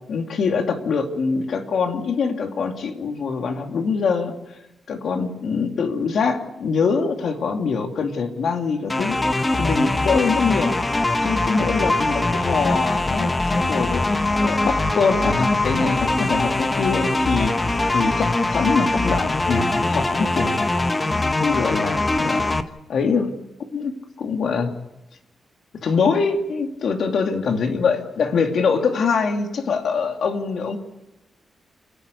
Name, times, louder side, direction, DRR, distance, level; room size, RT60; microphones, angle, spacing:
voice 1, 0.1-4.3 4.9-9.2 9.6-10.8 11.2-17.6 17.9-20.7 21.4-22.4 22.9-23.3 23.7-24.7 25.7-30.8, left 5 dB, 60° left, 4 dB, 2.6 m, -23 dB
sound 1, 8.9-22.6, left 2 dB, 15° left, 1.0 m, -22 dB
29.5 x 10.5 x 8.4 m, 0.94 s
wide cardioid pair, 155°, 0 cm